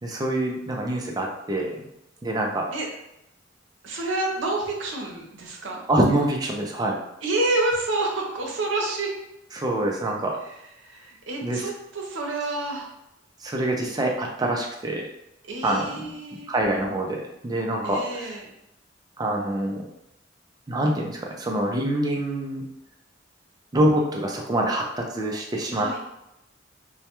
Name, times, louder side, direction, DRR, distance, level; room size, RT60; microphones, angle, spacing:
voice 1, 0.0-1.9 2.2-2.6 5.9-7.0 9.6-10.4 11.4-11.6 13.4-15.1 15.6-16.1 16.5-18.3 19.2-19.8 20.7-22.6 23.7-26.0, right 1 dB, 20° right, 0 dB, 0.3 m, -25 dB
voice 2, 3.8-5.8 7.2-9.1 10.4-12.9 15.5-16.5 17.8-18.5 25.7-26.0, right 2 dB, 80° right, 0 dB, 0.6 m, -28 dB
2.1 x 2.1 x 2.9 m, 0.84 s
head